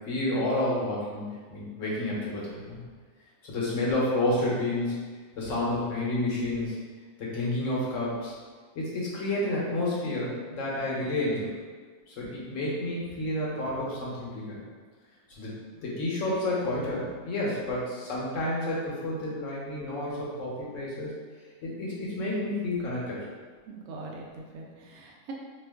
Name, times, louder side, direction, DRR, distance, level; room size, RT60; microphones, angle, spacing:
voice 1, 0.0-2.8 3.4-4.9 5.4-6.7 7.2-8.3 8.7-11.5 12.1-14.6 15.3-15.5 15.8-21.1 21.6-23.2, left 1 dB, 65° left, -5 dB, 1.1 m, -30 dB
voice 2, 23.7-25.3, right 3 dB, 90° right, -1 dB, 1.1 m, -42 dB
2.9 x 2.4 x 3.4 m, 1.5 s
omnidirectional pair, 1.4 m